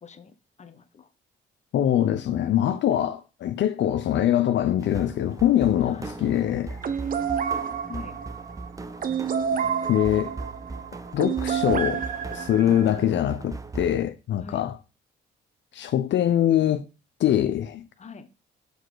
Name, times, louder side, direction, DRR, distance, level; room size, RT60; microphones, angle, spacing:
voice 1, 0.0-1.1 5.9-6.1 7.9-8.2 14.4-14.6 18.0-18.3, left 5 dB, 35° left, 0.9 m, -43 dB
voice 2, 1.7-6.8 9.9-10.3 11.1-12.0 12.3-14.8 15.7-16.8 17.2-17.8, left 11 dB, 65° left, 0.6 m, -23 dB
sound 1, 4.8-14.0, right 3 dB, 15° right, 0.6 m, -39 dB
sound 2, 6.8-13.0, right 7 dB, 45° right, 0.8 m, -29 dB
6.5 x 4.0 x 4.8 m
cardioid pair, 90°, 20 cm